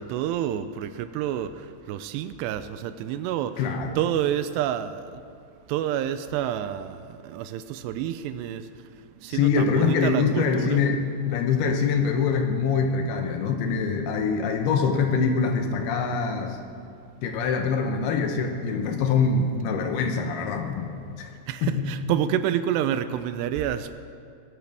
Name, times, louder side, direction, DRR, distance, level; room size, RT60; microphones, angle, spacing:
voice 1, 0.0-1.5 1.9-3.5 4.0-5.0 5.7-6.9 7.3-8.6 9.2-10.9 21.5-24.0, right 11 dB, 85° right, 11 dB, 2.6 m, -28 dB
voice 2, 3.6-4.0 9.3-11.0 11.3-16.6 17.2-21.3 21.6-21.9, left 5 dB, 75° left, 4 dB, 2.6 m, -24 dB
20.0 x 13.5 x 3.5 m, 2.4 s
omnidirectional pair, 4.9 m